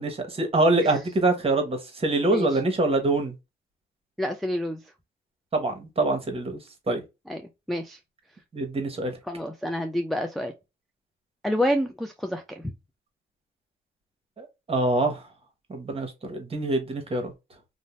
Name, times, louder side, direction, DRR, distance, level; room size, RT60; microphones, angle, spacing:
voice 1, 0.0-3.3 5.5-6.6 6.9-7.0 8.5-9.1 14.4-15.2 15.7-17.3, right 2 dB, 30° right, 1.0 m, -25 dB
voice 2, 4.2-4.8 7.3-7.4 7.7-8.0 9.3-10.5 11.4-12.4, equal, ahead, 0.3 m, -28 dB
2.6 x 2.1 x 3.0 m
cardioid pair, 90°, 20 cm